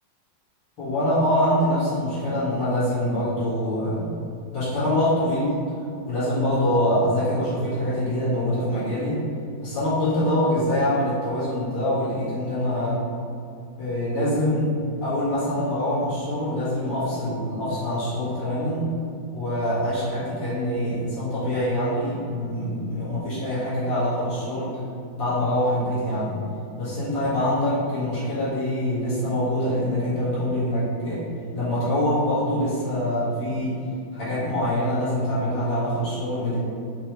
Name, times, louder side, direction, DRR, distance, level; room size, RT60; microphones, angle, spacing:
voice 1, 0.8-4.1 4.5-5.6 6.0-9.2 9.6-13.0 13.8-18.9 19.3-24.8 25.1-26.4 26.8-31.2 31.5-33.8 34.1-36.6, left 1 dB, 65° left, -13 dB, 2.4 m, -24 dB
5.1 x 3.2 x 3.1 m, 2.4 s
omnidirectional pair, 2.3 m